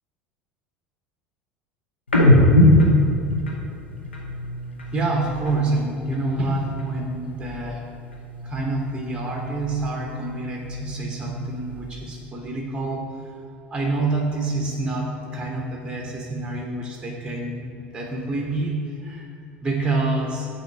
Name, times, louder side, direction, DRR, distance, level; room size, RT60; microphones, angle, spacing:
sound 1, 2.1-5.7 6.0-7.8 8.1-9.9 10.3-12.2, left 1 dB, 85° left, 0.8 m, -23 dB
voice 1, 4.9-7.8 8.4-13.4 13.7-17.7 17.9-19.3 19.6-20.5, right 2 dB, 15° right, -1 dB, 0.9 m, -27 dB
7.7 x 2.8 x 5.0 m, 2.5 s
figure-of-eight pair, 70°, 6 cm